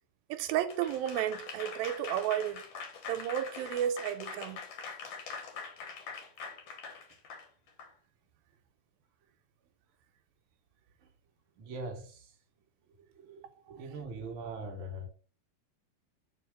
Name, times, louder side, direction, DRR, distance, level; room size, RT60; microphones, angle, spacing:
voice 1, 0.3-2.6 3.1-4.6, right 11 dB, 80° right, 2.2 m, -32 dB
Applause / Crowd, 0.7-7.9, left 5 dB, 65° left, 1.6 m, -43 dB
voice 2, 11.6-12.3 13.1-15.1, right 2 dB, 55° right, 1.6 m, -42 dB
5.6 x 4.6 x 4.9 m
omnidirectional pair, 4.5 m